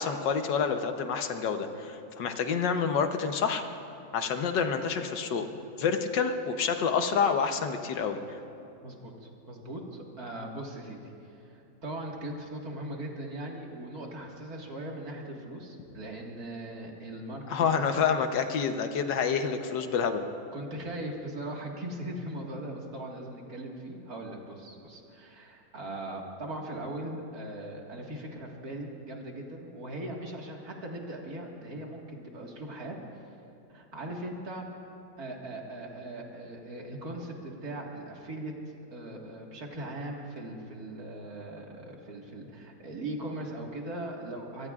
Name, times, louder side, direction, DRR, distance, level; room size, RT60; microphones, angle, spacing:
voice 1, 0.0-3.6 4.1-8.2 17.5-20.3, left 6 dB, 70° left, 6 dB, 1.5 m, -28 dB
voice 2, 8.8-11.0 11.3-18.0 18.9-19.0 20.5-33.0 33.7-34.7 35.2-38.5 38.9-44.7, right 1 dB, 50° right, -1 dB, 2.3 m, -39 dB
25.0 x 23.0 x 2.4 m, 2.9 s
omnidirectional pair, 2.0 m